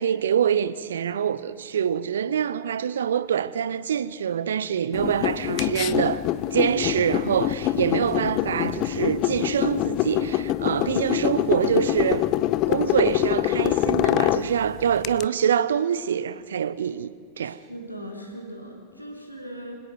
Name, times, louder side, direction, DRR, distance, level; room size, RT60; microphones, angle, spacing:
voice 1, 0.0-6.2 6.5-12.3 12.7-17.1 17.4-17.6, right 8 dB, 65° right, 0.8 m, -25 dB
sound 1, 4.9-15.2, left 14 dB, 40° left, 0.6 m, -25 dB
voice 2, 17.4-19.8, equal, 90° left, 3.6 m, -39 dB
25.5 x 17.5 x 6.2 m
figure-of-eight pair, 90°, 0 cm